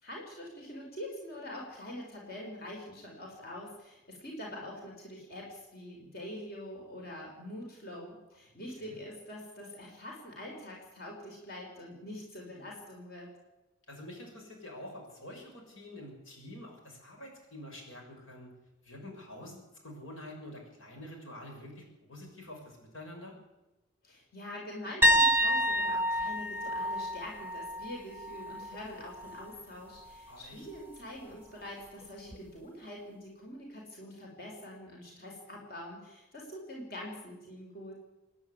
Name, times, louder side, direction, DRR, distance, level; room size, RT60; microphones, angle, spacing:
voice 1, 0.0-13.3 24.0-37.9, left 1 dB, 50° left, -1 dB, 5.0 m, -44 dB
voice 2, 13.9-18.5 18.8-23.4 30.3-30.7, left 1 dB, 85° left, 1 dB, 6.7 m, -47 dB
sound 1, 25.0-28.8 29.1-29.4 32.3-32.4, equal, 10° right, 0.8 m, -28 dB
26.0 x 11.0 x 9.7 m, 1.0 s
head